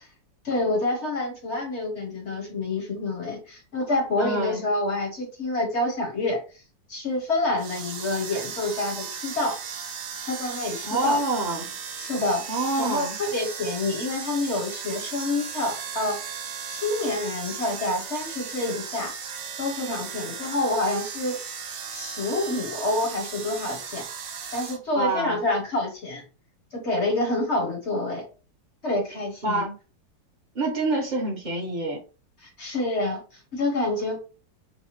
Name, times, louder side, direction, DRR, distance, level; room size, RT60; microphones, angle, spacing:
voice 1, 0.4-6.4 6.9-9.6 10.2-11.2 12.0-12.5 12.8-16.4 16.7-19.1 19.6-21.4 21.9-24.1 24.5-26.2 26.7-28.3 28.8-29.6 32.4-34.2, left 2 dB, 45° left, 2 dB, 1.0 m, -27 dB
voice 2, 4.2-4.6 10.8-11.7 12.5-13.2 24.9-25.4 29.4-29.7 30.5-32.0, right 2 dB, 30° right, 0 dB, 1.0 m, -26 dB
sound 1, 7.5-24.8, right 6 dB, 60° right, 1.0 m, -36 dB
5.7 x 2.2 x 3.0 m, 0.34 s
omnidirectional pair, 1.9 m